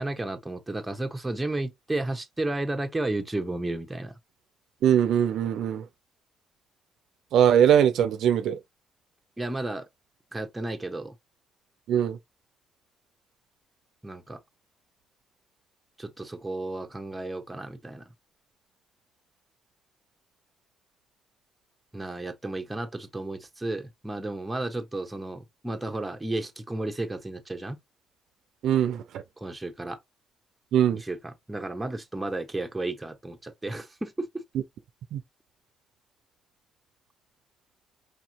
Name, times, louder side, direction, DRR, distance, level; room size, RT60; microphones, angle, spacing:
voice 1, 0.0-4.2 9.4-9.9 10.3-11.2 14.0-14.4 16.0-18.1 21.9-27.8 29.4-30.0 30.9-34.4, right 2 dB, 10° right, 1.1 m, -33 dB
voice 2, 4.8-5.9 7.3-8.6 11.9-12.2 28.6-29.2 30.7-31.0 35.1-35.2, right 9 dB, 80° right, 0.6 m, -21 dB
4.9 x 2.9 x 2.8 m
cardioid pair, 90°, 0 cm